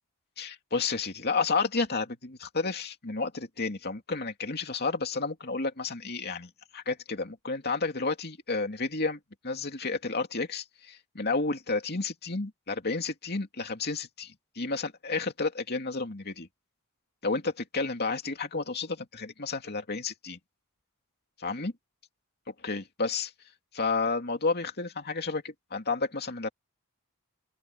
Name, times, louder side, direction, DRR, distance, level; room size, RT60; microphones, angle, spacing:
voice 1, 0.4-9.2 9.4-16.5 17.2-20.4 21.4-21.7 22.6-23.3 23.7-26.5, left 4 dB, 45° left, 2.7 m, -31 dB
open air
head